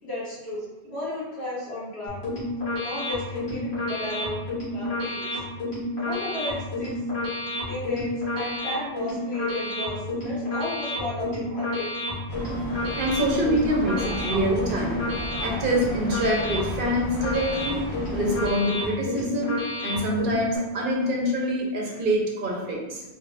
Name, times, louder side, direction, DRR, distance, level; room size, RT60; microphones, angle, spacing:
voice 1, 0.0-2.3 2.8-5.4 6.0-7.0 7.7-12.0, left 1 dB, 80° left, -9 dB, 1.8 m, -34 dB
sound 1, 2.1-20.6, left 1 dB, 55° left, 1.5 m, -30 dB
sound 2, 12.3-18.5, equal, 15° right, 0.9 m, -34 dB
voice 2, 13.0-15.0 15.4-17.8 18.1-23.0, equal, 55° right, -2 dB, 1.0 m, -25 dB
3.4 x 2.4 x 3.3 m, 1.1 s
omnidirectional pair, 1.1 m